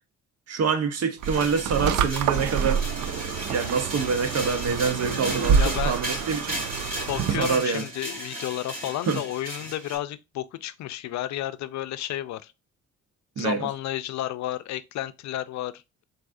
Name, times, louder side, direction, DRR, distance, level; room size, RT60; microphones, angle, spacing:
voice 1, 0.5-6.6 7.4-7.8 9.1-9.2 13.4-13.7, right 5 dB, 55° right, 1.0 m, -26 dB
sound 1, 1.2-10.0, right 1 dB, 30° right, 3.1 m, -35 dB
sound 2, 1.2-7.6, right 7 dB, 75° right, 0.6 m, -27 dB
voice 2, 5.5-6.0 7.1-12.5 13.4-16.0, left 13 dB, 65° left, 0.5 m, -32 dB
4.5 x 4.0 x 2.6 m
cardioid pair, 90°, 30 cm